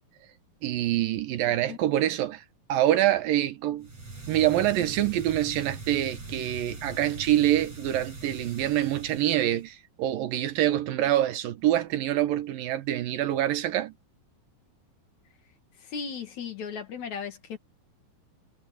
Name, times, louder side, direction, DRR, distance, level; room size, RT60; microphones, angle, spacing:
voice 1, 0.6-2.4 2.7-3.9 4.3-13.9, right 13 dB, 70° right, 2.7 m, -25 dB
sound 1, 3.8-9.7, right 3 dB, 40° right, 7.8 m, -41 dB
voice 2, 15.8-17.6, left 6 dB, 55° left, 2.9 m, -36 dB
omnidirectional pair, 4.4 m